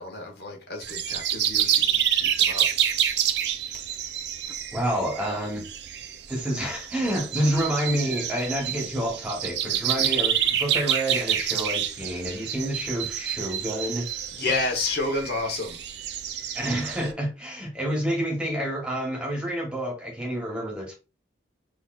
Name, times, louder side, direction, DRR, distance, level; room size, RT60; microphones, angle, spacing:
voice 1, 0.0-3.0 14.3-15.8, left 3 dB, 60° left, 1.2 m, -30 dB
sound 1, 0.8-17.1, right 10 dB, 65° right, 0.5 m, -28 dB
voice 2, 4.7-5.7 6.3-14.1 16.5-20.9, equal, 5° right, 1.2 m, -28 dB
6.1 x 2.7 x 2.5 m
head